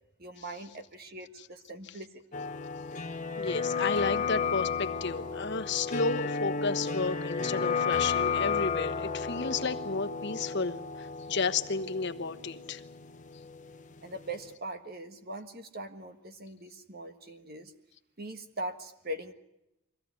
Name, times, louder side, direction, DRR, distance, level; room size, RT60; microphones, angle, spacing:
voice 1, 0.2-2.2 14.0-17.7 18.2-19.3, right 1 dB, 45° right, 7 dB, 1.6 m, -41 dB
sound 1, 2.3-14.0 14.3-14.4, left 5 dB, 35° left, 0.9 m, -33 dB
voice 2, 3.4-12.8, left 4 dB, 50° left, 7 dB, 1.2 m, -32 dB
23.5 x 16.0 x 9.6 m, 0.88 s
head